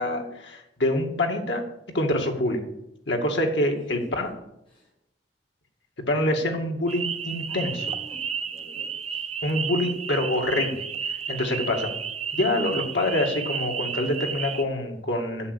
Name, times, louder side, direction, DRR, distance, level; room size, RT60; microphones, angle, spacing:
voice 1, 0.0-1.7 1.9-2.7 3.1-4.3 6.0-7.8 9.4-11.9 12.3-15.5, left 1 dB, 75° left, 2 dB, 2.2 m, -26 dB
voice 2, 3.6-4.1 4.7-4.9 7.5-8.2 8.4-9.3, left 1 dB, 30° left, -6 dB, 5.0 m, -46 dB
sound 1, 6.9-14.6, right 6 dB, 35° right, 0.7 m, -32 dB
11.0 x 7.5 x 8.4 m, 0.83 s
head